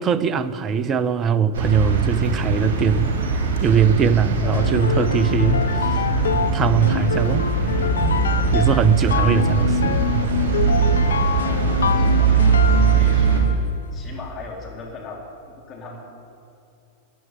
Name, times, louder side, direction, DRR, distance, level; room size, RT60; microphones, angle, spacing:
voice 1, 0.0-3.1 3.6-5.6 6.2-7.5 8.0-8.2 8.5-10.1, right 7 dB, 30° right, 15 dB, 0.7 m, -21 dB
sound 1, 1.5-13.4, right 5 dB, 60° right, 2.9 m, -21 dB
sound 2, 4.5-13.7, left 7 dB, 70° left, 0.5 m, -25 dB
voice 2, 11.4-12.5 12.9-13.6 13.9-16.0, left 4 dB, 25° left, -2 dB, 4.3 m, -38 dB
15.0 x 9.6 x 9.6 m, 2.6 s
figure-of-eight pair, 90°, 0 cm